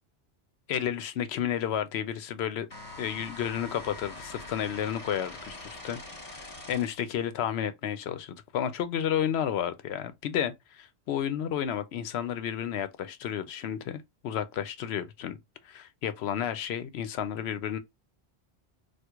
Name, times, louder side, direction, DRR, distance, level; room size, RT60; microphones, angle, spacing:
voice 1, 0.7-2.7 3.0-6.0 6.3-15.4 15.6-17.8, left 9 dB, 75° left, 0.8 m, -32 dB
sound 1, 2.7-7.1, left 2 dB, 40° left, 1.3 m, -44 dB
4.4 x 2.4 x 2.3 m
omnidirectional pair, 1.1 m